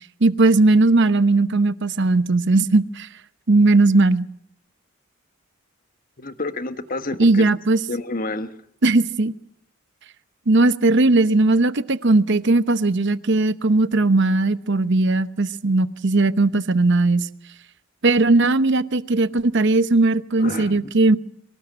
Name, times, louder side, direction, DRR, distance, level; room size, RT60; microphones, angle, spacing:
voice 1, 0.2-3.1 3.5-4.2 7.2-7.8 8.8-9.3 10.5-17.3 18.0-21.2, right 2 dB, 60° right, 13 dB, 0.9 m, -18 dB
voice 2, 6.2-7.4 7.9-8.5 20.4-20.8, left 2 dB, 45° left, 10 dB, 1.3 m, -29 dB
24.0 x 19.0 x 7.6 m, 0.65 s
head